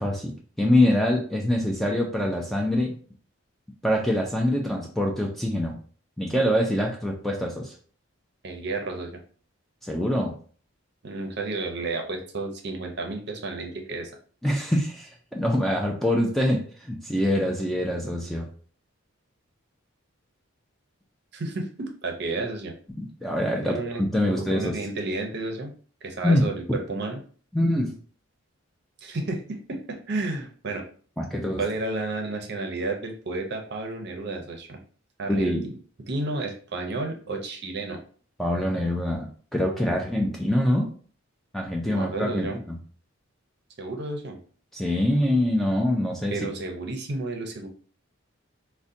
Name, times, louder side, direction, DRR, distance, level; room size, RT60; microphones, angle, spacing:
voice 1, 0.0-3.0 3.8-5.8 6.2-7.7 9.8-10.3 14.4-18.5 23.0-24.8 26.2-26.5 27.5-27.9 31.2-31.6 35.3-35.7 38.4-40.9 41.5-42.8 44.7-46.4, left 1 dB, ahead, 0 dB, 0.3 m, -24 dB
voice 2, 8.4-9.2 11.0-14.1 21.3-22.7 23.6-24.0 24.3-25.7 26.0-27.2 29.0-30.8 31.6-34.8 35.2-35.8 36.1-38.0 41.9-42.6 43.8-44.4 46.3-47.7, right 2 dB, 50° right, 3 dB, 0.6 m, -31 dB
3.7 x 2.1 x 2.6 m, 0.44 s
head